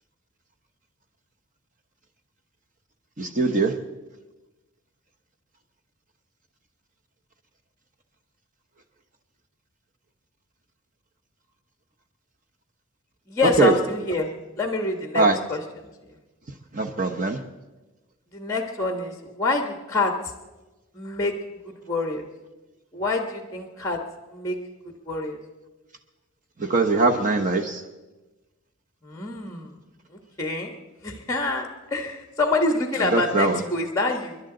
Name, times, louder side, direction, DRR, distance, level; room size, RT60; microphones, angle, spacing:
voice 1, 3.2-3.7 13.6-13.7 15.1-15.4 16.7-17.4 26.6-27.8 33.1-33.6, right 3 dB, 35° right, 4 dB, 0.9 m, -21 dB
voice 2, 13.3-15.9 18.3-20.1 20.9-21.4 21.6-22.2 22.9-24.0 24.3-24.6 25.1-25.4 29.0-29.7 30.1-30.8 31.0-34.4, left 2 dB, 15° left, 4 dB, 1.2 m, -27 dB
30.0 x 11.0 x 3.9 m, 1.1 s
head